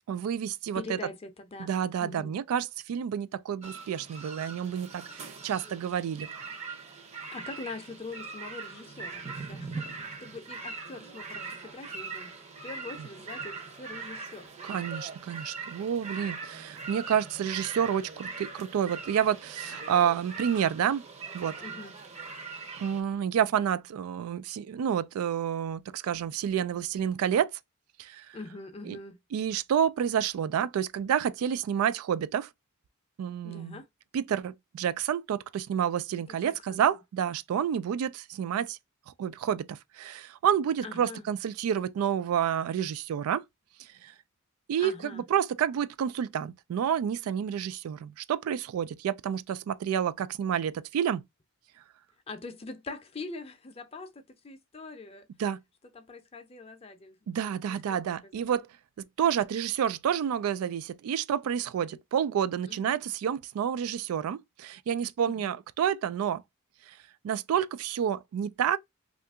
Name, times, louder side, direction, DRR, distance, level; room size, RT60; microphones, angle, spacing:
voice 1, 0.1-1.0 1.6-6.3 13.0-13.1 14.7-21.0 21.3-21.6 22.8-27.5 28.0-28.4 28.9-29.0 29.3-32.5 33.2-33.8 34.1-38.8 39.1-43.4 44.0-44.1 44.7-51.2 55.4-55.6 57.3-58.7 59.2-66.4 66.9-67.0 67.2-68.8, right 8 dB, 90° right, 0.3 m, -29 dB
voice 2, 0.7-1.7 2.0-2.3 7.3-12.3 12.6-14.5 21.6-22.0 28.3-29.2 33.4-33.9 36.3-37.0 40.8-41.3 44.8-45.2 52.3-55.3 55.9-58.3 62.7-63.0 65.2-65.6, left 3 dB, 30° left, 0.5 m, -43 dB
sound 1, 3.6-23.0, right 4 dB, 30° right, 0.6 m, -41 dB
2.7 x 2.4 x 3.5 m
head